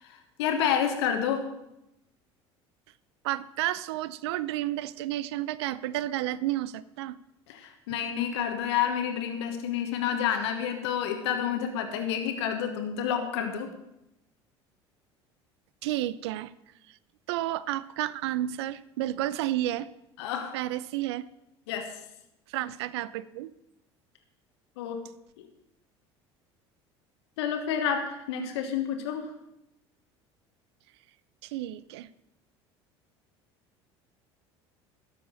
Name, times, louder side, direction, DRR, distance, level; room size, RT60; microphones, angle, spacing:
voice 1, 0.0-1.4 7.5-13.7 20.2-20.6 21.7-22.0 24.8-25.0 27.4-29.2, left 8 dB, 75° left, 6 dB, 1.3 m, -29 dB
voice 2, 3.2-7.2 15.8-16.5 16.9-17.0 17.3-19.9 20.5-21.3 22.5-23.5 31.4-32.1, right 14 dB, 70° right, 18 dB, 0.5 m, -31 dB
12.5 x 6.5 x 6.3 m, 0.86 s
hypercardioid pair, 70°, 14 cm